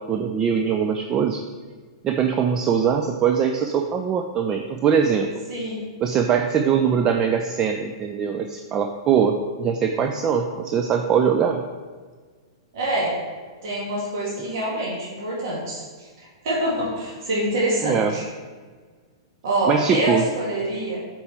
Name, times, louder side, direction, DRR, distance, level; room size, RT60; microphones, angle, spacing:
voice 1, 0.1-1.4 2.0-5.3 6.0-11.6 17.8-18.1 19.7-20.3, right 7 dB, 25° right, 5 dB, 0.4 m, -22 dB
voice 2, 5.5-5.9 12.7-13.2 13.6-18.2 19.4-21.0, right 1 dB, 50° right, -5 dB, 2.0 m, -26 dB
8.0 x 4.6 x 3.4 m, 1.5 s
figure-of-eight pair, 105°, 2 cm